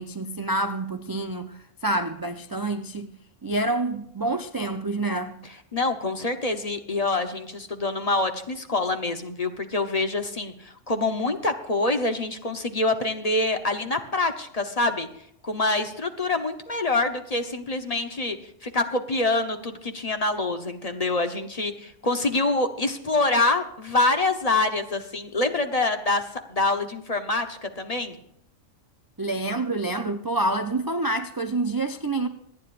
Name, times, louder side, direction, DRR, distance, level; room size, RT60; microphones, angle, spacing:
voice 1, 0.0-3.1 3.4-5.4 29.2-32.3, right 2 dB, 30° right, 0.4 m, -27 dB
voice 2, 5.7-15.1 15.4-28.2, left 2 dB, 35° left, 1.0 m, -26 dB
26.0 x 9.9 x 2.5 m
omnidirectional pair, 1.3 m